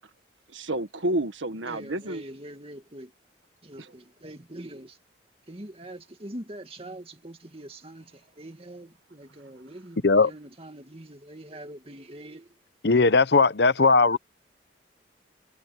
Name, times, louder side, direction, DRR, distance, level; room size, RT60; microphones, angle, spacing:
voice 1, 0.5-2.2 3.8-3.9 14.1-14.2, right 1 dB, 85° right, 1.7 m, -30 dB
voice 2, 1.7-3.1 3.6-5.0 5.5-12.6, right 1 dB, 30° right, 2.3 m, -43 dB
voice 3, 12.8-14.2, left 4 dB, 60° left, 0.8 m, -18 dB
head